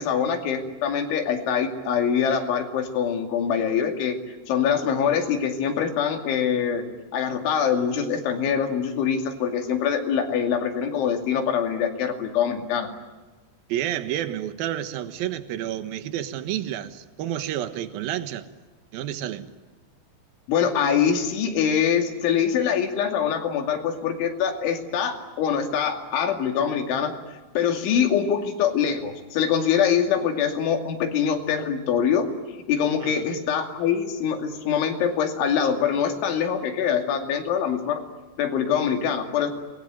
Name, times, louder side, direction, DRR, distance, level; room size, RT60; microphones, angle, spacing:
voice 1, 0.0-4.2 4.5-6.9 7.1-12.9 20.5-27.2 27.5-32.3 32.7-38.0 38.4-39.5, left 7 dB, 80° left, 4.9 m, -24 dB
voice 2, 13.7-18.5 18.9-19.5 33.0-33.4, right 11 dB, 65° right, 2.6 m, -30 dB
28.0 x 21.0 x 9.3 m
omnidirectional pair, 5.4 m